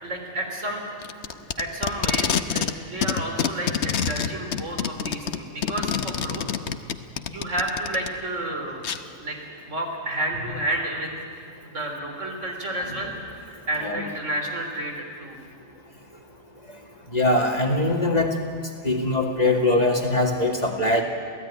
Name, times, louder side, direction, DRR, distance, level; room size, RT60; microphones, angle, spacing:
voice 1, 0.0-0.8 1.3-6.4 7.3-8.8 9.2-9.4 9.7-11.1 11.6-13.1 13.4-15.4, right 1 dB, 80° right, 2 dB, 4.0 m, -30 dB
Packing tape duct tape, 1.0-2.8 3.0-8.1 8.8-9.0, left 7 dB, 65° left, 1.2 m, -26 dB
voice 2, 17.1-18.3 18.8-21.0, left 2 dB, 35° left, 2 dB, 2.2 m, -22 dB
27.5 x 16.5 x 9.9 m, 2.2 s
omnidirectional pair, 1.3 m